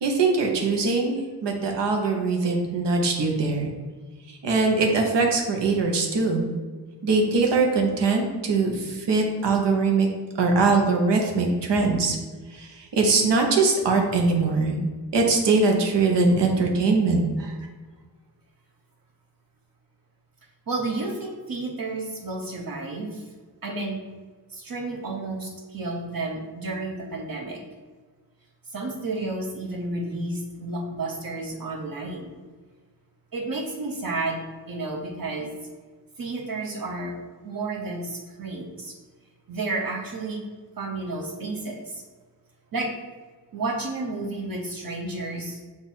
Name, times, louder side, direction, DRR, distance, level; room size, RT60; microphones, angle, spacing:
voice 1, 0.0-3.7 4.3-6.5 7.0-10.1 10.4-12.2 12.5-14.8 15.1-17.5, right 3 dB, 90° right, 2 dB, 0.8 m, -22 dB
voice 2, 20.7-23.3 23.6-24.0 24.5-27.6 28.7-32.3 33.3-35.5 36.2-37.2 37.4-39.0 39.5-40.4 40.8-42.0 42.7-42.9 43.5-45.6, right 2 dB, 55° right, -1 dB, 0.7 m, -31 dB
5.2 x 2.4 x 4.1 m, 1.4 s
wide cardioid pair, 80°, 41 cm